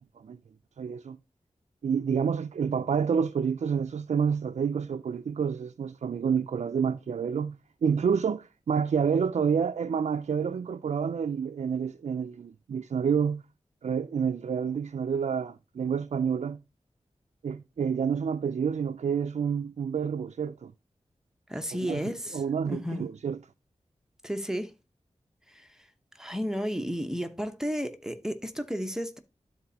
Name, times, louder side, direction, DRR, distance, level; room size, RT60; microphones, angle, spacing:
voice 1, 0.8-1.2 1.8-13.4 13.8-16.6 17.4-20.7 21.7-23.4, right 6 dB, 75° right, 0.4 m, -28 dB
voice 2, 21.5-23.1 24.2-24.7 25.5-25.7 26.2-29.2, equal, 5° right, 0.9 m, -33 dB
12.5 x 4.2 x 2.8 m
wide cardioid pair, 70°, 12 cm